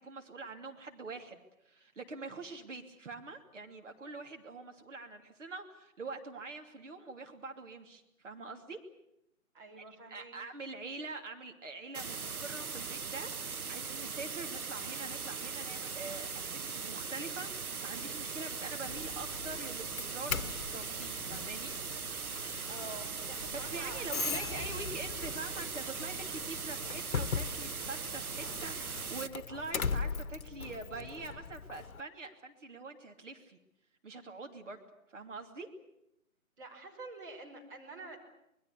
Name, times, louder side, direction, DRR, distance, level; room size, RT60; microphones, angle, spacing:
voice 1, 0.0-1.4 1.6-8.8 9.8-9.9 10.1-21.7 23.5-33.6 34.0-35.7, right 3 dB, 60° right, 4 dB, 2.9 m, -45 dB
voice 2, 9.5-10.3 22.7-24.5 36.6-38.2, right 3 dB, 40° right, 2 dB, 5.8 m, -47 dB
sound 1, 11.9-29.3, right 5 dB, 90° right, 1.0 m, -40 dB
Doorbell, 18.9-32.0, left 5 dB, 75° left, 0.9 m, -40 dB
25.5 x 21.0 x 8.4 m, 0.81 s
figure-of-eight pair, 145°, 42 cm